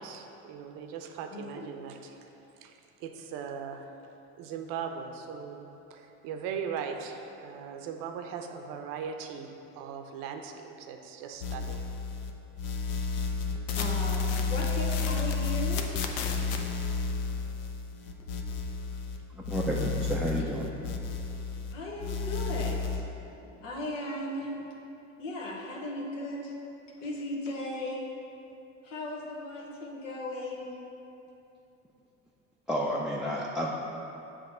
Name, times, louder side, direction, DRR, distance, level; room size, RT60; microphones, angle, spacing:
voice 1, 0.0-2.3 2.6-3.9 4.4-11.8, right 6 dB, 65° right, 5 dB, 0.7 m, -39 dB
voice 2, 1.3-1.7 13.7-15.8 17.3-17.5 21.7-23.0 23.4-24.5 25.2-26.5 27.0-28.1 28.8-30.7, left 1 dB, 85° left, -2 dB, 1.1 m, -37 dB
sound 1, 11.4-12.3 12.6-19.2 19.4-21.7 22.0-23.0, left 4 dB, 60° left, 0.7 m, -31 dB
voice 3, 19.3-20.7 32.7-33.7, equal, ahead, -3 dB, 0.4 m, -31 dB
7.2 x 2.9 x 5.5 m, 2.8 s
hypercardioid pair, 80°, 36 cm